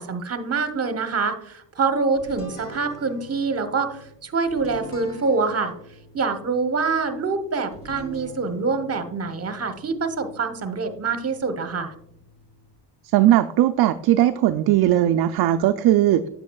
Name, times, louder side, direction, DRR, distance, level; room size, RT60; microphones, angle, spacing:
voice 1, 0.0-5.7 6.1-11.9, right 4 dB, 30° right, 9 dB, 0.9 m, -25 dB
sound 1, 2.2-12.8, equal, 60° left, 2.3 m, -44 dB
voice 2, 13.1-16.2, right 13 dB, 55° right, 9 dB, 0.5 m, -18 dB
8.4 x 7.7 x 2.3 m, 0.74 s
supercardioid pair, 55°, 46 cm